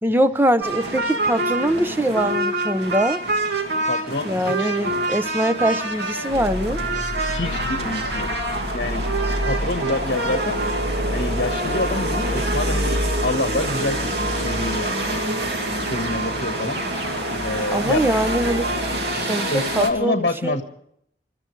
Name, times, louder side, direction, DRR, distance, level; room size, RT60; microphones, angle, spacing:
voice 1, 0.0-3.2 4.2-6.8 17.7-18.7 19.1-20.6, right 1 dB, 10° right, 12 dB, 0.7 m, -22 dB
sound 1, 0.6-19.9, right 2 dB, 70° right, 2.6 m, -26 dB
voice 2, 3.9-4.7 7.3-8.3 8.7-9.0 9.4-10.6 11.1-15.2 15.9-16.8 17.4-18.1 19.5-20.6, left 2 dB, 60° left, 5 dB, 1.5 m, -27 dB
sound 2, 6.3-17.7, left 1 dB, 50° right, 2.5 m, -29 dB
29.0 x 13.5 x 3.3 m, 0.68 s
head